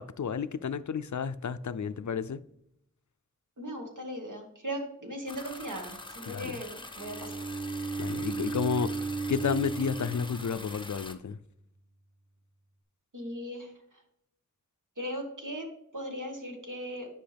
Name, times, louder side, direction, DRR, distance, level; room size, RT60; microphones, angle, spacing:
voice 1, 0.0-2.4 6.3-6.5 8.0-9.0 9.3-11.4, left 6 dB, 65° left, 0.4 m, -31 dB
voice 2, 3.6-7.5 13.1-14.0 15.0-15.7 15.9-17.1, equal, 75° right, 1.7 m, -38 dB
sound 1, 5.3-11.2, left 2 dB, 15° left, 0.7 m, -44 dB
Bowed string instrument, 6.9-11.1, right 4 dB, 35° right, 1.0 m, -35 dB
10.0 x 5.5 x 3.4 m
wide cardioid pair, 45°, 31 cm